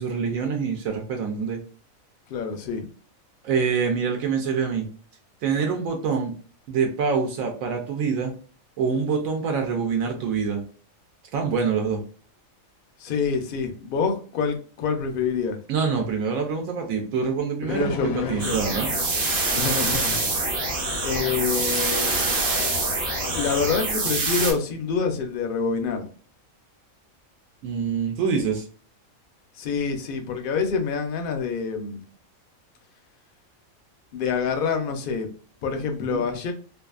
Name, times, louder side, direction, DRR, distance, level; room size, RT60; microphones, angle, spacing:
voice 1, 0.0-1.6 3.4-4.9 5.4-6.3 6.7-8.3 8.8-10.6 11.3-12.0 15.7-18.9 27.6-28.6 36.0-36.2, right 5 dB, 80° right, 3 dB, 1.0 m, -25 dB
voice 2, 2.3-2.9 13.0-15.6 17.7-18.6 19.5-20.2 21.0-22.1 23.3-26.1 29.6-32.0 34.1-35.3 35.6-36.5, left 5 dB, 65° left, 5 dB, 0.5 m, -26 dB
sound 1, 17.7-23.9, left 6 dB, 85° left, 1.0 m, -35 dB
sound 2, 18.4-24.5, right 3 dB, 55° right, 0.9 m, -25 dB
2.7 x 2.4 x 2.3 m, 0.42 s
omnidirectional pair, 1.4 m